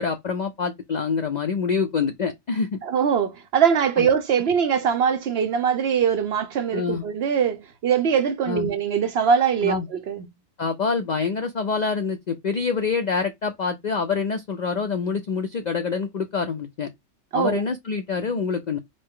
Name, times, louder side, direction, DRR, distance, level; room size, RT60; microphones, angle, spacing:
voice 1, 0.0-2.8 4.0-4.1 6.7-7.0 8.5-8.7 9.6-9.9 10.6-16.9 17.3-18.8, left 5 dB, 70° left, 0.4 m, -26 dB
voice 2, 2.8-10.3 17.3-17.6, right 7 dB, 65° right, 0.7 m, -22 dB
5.1 x 2.1 x 3.6 m
omnidirectional pair, 1.4 m